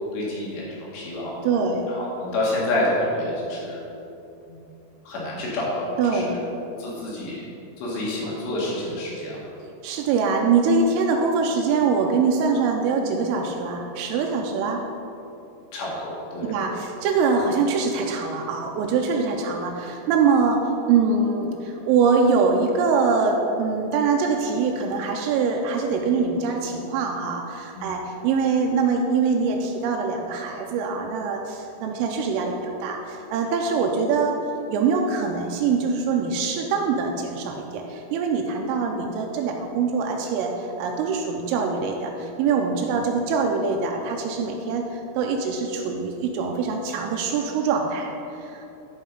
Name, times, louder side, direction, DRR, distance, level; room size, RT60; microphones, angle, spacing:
voice 1, 0.0-1.3 1.9-3.8 4.5-4.7 5.1-6.4 6.8-7.4 7.8-9.4 15.7-16.5 27.7-27.9 42.8-42.9, left 1 dB, 65° left, -5 dB, 3.5 m, -28 dB
voice 2, 1.4-1.9 6.0-6.3 9.8-14.8 16.4-34.3 34.7-48.7, right 5 dB, 85° right, 1 dB, 3.2 m, -23 dB
11.5 x 5.4 x 5.3 m, 2.8 s
omnidirectional pair, 5.9 m